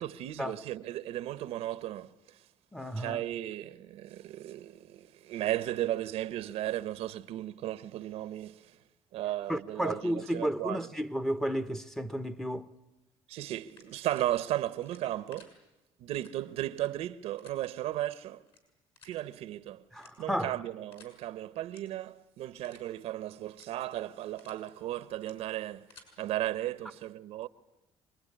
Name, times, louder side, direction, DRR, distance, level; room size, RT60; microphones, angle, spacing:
voice 1, 0.0-2.4 3.0-8.8 9.1-10.9 13.3-15.5 16.0-18.4 19.0-19.8 20.2-25.9 26.2-27.5, right 13 dB, 75° right, 0.9 m, -35 dB
voice 2, 2.7-3.2 9.5-12.7 19.9-20.5, equal, 5° left, 0.9 m, -32 dB
sound 1, 13.6-14.3 14.8-15.5 16.1-16.3 16.7-16.9 17.4-17.5 18.4-18.6 19.0-19.2 19.9-20.4 20.9-21.1 21.6-21.8 22.2-22.3 22.6-22.9 23.5-23.7 24.1-24.6 25.1-25.3 25.7-26.1, left 5 dB, 55° left, 6.7 m, -56 dB
26.0 x 21.0 x 9.9 m
cardioid pair, 110°, 10 cm